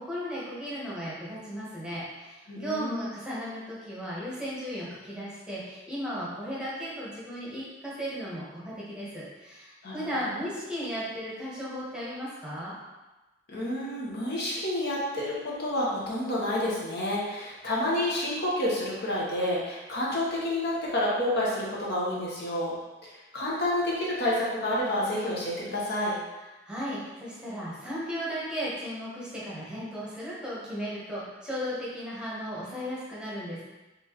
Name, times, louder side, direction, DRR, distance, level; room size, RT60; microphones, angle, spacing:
voice 1, 0.0-12.7 26.6-33.6, equal, 5° right, -8 dB, 1.1 m, -35 dB
voice 2, 2.5-3.1 9.8-10.0 13.5-22.8 23.0-26.2, left 1 dB, 60° left, -5 dB, 1.0 m, -29 dB
4.3 x 3.2 x 3.0 m, 1.1 s
head